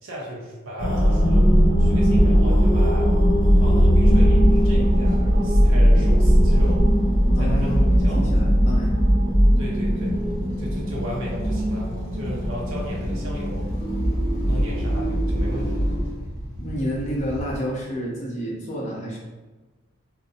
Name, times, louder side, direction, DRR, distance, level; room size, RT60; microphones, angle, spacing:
voice 1, 0.0-3.2 3.6-6.8 7.4-7.7 8.0-8.3 9.6-10.2 10.6-13.7 14.4-15.9 16.1-16.3, equal, 70° right, -4 dB, 0.5 m, -35 dB
sound 1, 0.8-16.0, equal, 65° left, 1.0 m, -19 dB
sound 2, 2.0-17.6, equal, 15° right, 1.0 m, -38 dB
voice 2, 7.3-9.0 16.6-19.2, equal, 35° left, -5 dB, 0.6 m, -29 dB
2.5 x 2.0 x 2.6 m, 1.2 s
head